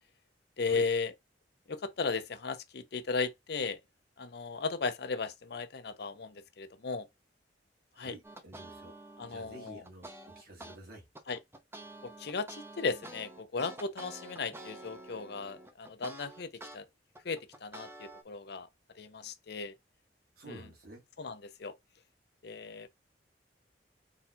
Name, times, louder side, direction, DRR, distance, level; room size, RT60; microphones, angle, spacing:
voice 1, 0.6-1.1 1.7-3.8 4.2-7.1 8.0-8.2 9.2-9.8 11.3-11.4 12.0-16.8 17.2-18.7 19.0-19.7 20.5-20.7 21.2-21.7 22.4-22.9, left 4 dB, 60° left, 0.6 m, -36 dB
voice 2, 7.9-8.9 9.2-11.0 20.4-21.0, right 2 dB, 55° right, 1.8 m, -50 dB
sound 1, 8.2-10.8 11.1-16.8 17.1-18.2, right 1 dB, 15° right, 0.6 m, -48 dB
4.0 x 2.4 x 4.3 m
head